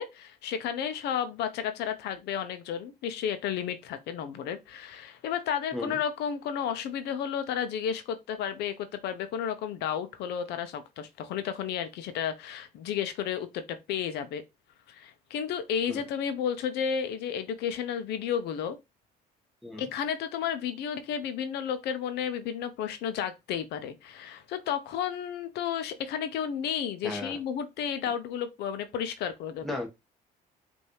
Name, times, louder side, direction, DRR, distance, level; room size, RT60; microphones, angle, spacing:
voice 1, 0.0-14.4 14.9-18.8 19.8-29.8, left 8 dB, 80° left, 0.7 m, -32 dB
voice 2, 27.0-27.4 29.6-29.9, left 2 dB, ahead, 1.4 m, -35 dB
5.4 x 2.7 x 3.1 m
cardioid pair, 110°, 17 cm